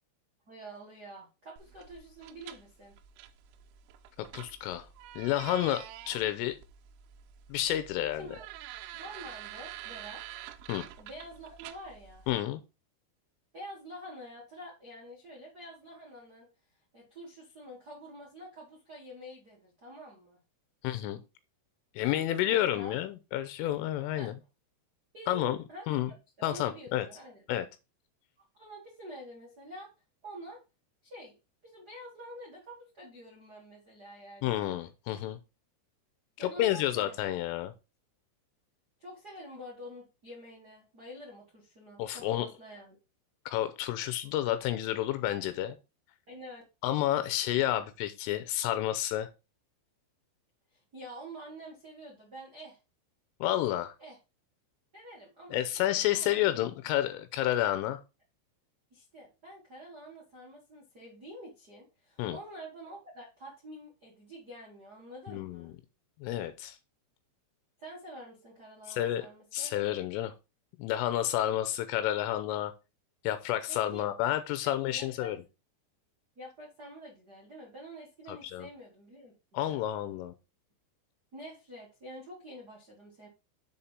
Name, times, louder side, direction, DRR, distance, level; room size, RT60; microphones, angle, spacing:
voice 1, 0.4-2.9 8.2-8.4 8.9-10.2 11.0-12.3 13.5-16.5 16.9-20.4 22.0-22.9 24.1-24.3 25.1-27.4 28.5-29.9 30.2-30.6 31.0-31.4 31.6-34.7 36.4-37.3 39.0-43.0 46.3-46.6 50.7-52.8 54.0-54.2 54.9-56.3 58.9-65.7 67.8-69.7 73.7-74.0 74.6-75.3 76.3-79.8 81.3-83.3, equal, 70° right, -4 dB, 0.9 m, -47 dB
sound 1, 1.6-12.3, right 12 dB, 90° right, 3.2 m, -47 dB
voice 2, 4.3-4.9 5.2-6.6 7.5-8.3 10.7-10.9 12.3-12.6 20.8-21.2 22.0-24.3 25.3-25.6 25.9-26.1 26.4-27.1 27.5-27.7 34.4-35.4 36.4-37.7 42.0-42.5 43.5-45.8 46.8-49.3 53.4-53.9 55.5-58.0 62.2-62.4 65.3-65.7 66.2-66.8 68.9-69.3 69.5-70.3 70.8-72.7 73.2-75.4 78.3-78.7 79.5-80.3, left 13 dB, 85° left, 11 dB, 3.1 m, -30 dB
7.2 x 4.3 x 5.4 m, 0.28 s
omnidirectional pair, 5.7 m